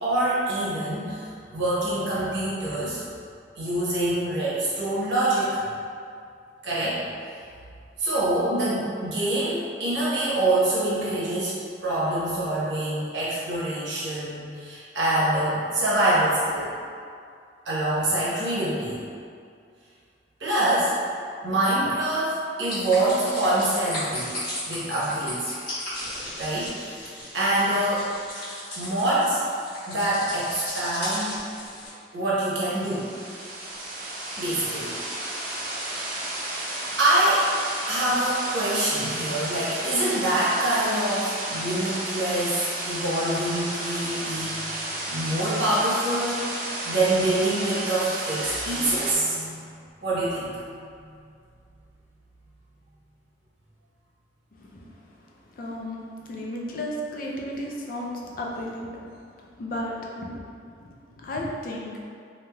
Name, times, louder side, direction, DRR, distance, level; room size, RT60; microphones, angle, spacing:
voice 1, 0.0-3.0 3.6-5.6 6.6-7.0 8.0-16.7 17.6-19.0 20.4-20.9 21.4-24.3 24.6-25.5 26.4-26.9 27.3-28.1 28.8-29.4 29.9-31.4 32.1-33.1 34.4-35.0 37.0-37.5 37.9-44.6 45.1-46.5 46.8-49.6 50.0-50.8, right 1 dB, 80° right, -8 dB, 0.9 m, -25 dB
sound 1, 22.6-31.9, left 1 dB, 25° left, 1.3 m, -36 dB
sound 2, 32.5-49.1, right 1 dB, 45° right, 0.4 m, -32 dB
voice 2, 54.5-54.8 55.6-56.0 56.3-58.9 59.6-60.3 61.2-61.9, left 1 dB, 45° left, -2 dB, 0.3 m, -33 dB
3.2 x 2.7 x 2.2 m, 2.3 s
head